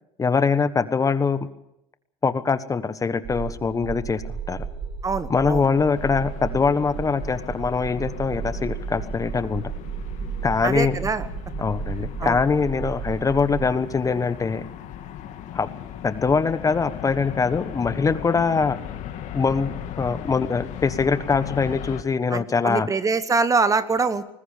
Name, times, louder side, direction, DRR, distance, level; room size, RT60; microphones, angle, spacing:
voice 1, 0.2-1.4 2.2-4.2 4.5-4.7 5.3-9.6 10.4-11.0 11.6-14.6 15.5-15.7 16.0-18.8 19.3-22.9, left 5 dB, 20° left, 13 dB, 1.3 m, -23 dB
sound 1, 3.2-13.7, right 6 dB, 55° right, 6.1 m, -34 dB
voice 2, 5.0-5.6 10.6-11.3 12.2-12.4 22.3-24.3, right 4 dB, 20° right, 14 dB, 1.2 m, -24 dB
sound 2, 5.6-22.0, left 10 dB, 50° left, 2.5 m, -37 dB
20.5 x 20.0 x 6.7 m, 0.81 s
hypercardioid pair, 85°, 15 cm